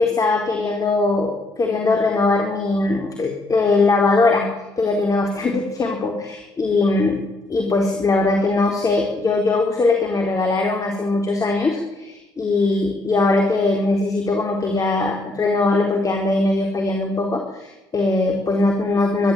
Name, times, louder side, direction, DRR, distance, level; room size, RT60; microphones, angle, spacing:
voice 1, 0.0-7.2 7.5-19.3, left 3 dB, 30° left, 2 dB, 4.3 m, -20 dB
23.0 x 13.0 x 9.2 m, 1.0 s
hypercardioid pair, 70°, 12 cm